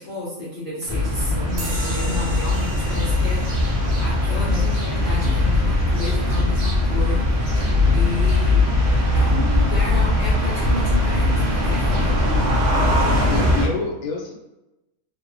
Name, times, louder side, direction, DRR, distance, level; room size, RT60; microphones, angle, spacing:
voice 1, 0.0-7.6 7.9-8.6 9.1-12.1, left 1 dB, 50° left, -8 dB, 0.6 m, -31 dB
sound 1, 0.9-13.7, left 2 dB, 50° right, 0.9 m, -20 dB
sound 2, 1.6-8.6, right 2 dB, 90° right, 1.1 m, -38 dB
voice 2, 7.6-8.3 13.3-14.3, left 4 dB, 80° left, -1 dB, 1.1 m, -29 dB
2.8 x 2.0 x 2.6 m, 0.96 s
omnidirectional pair, 1.5 m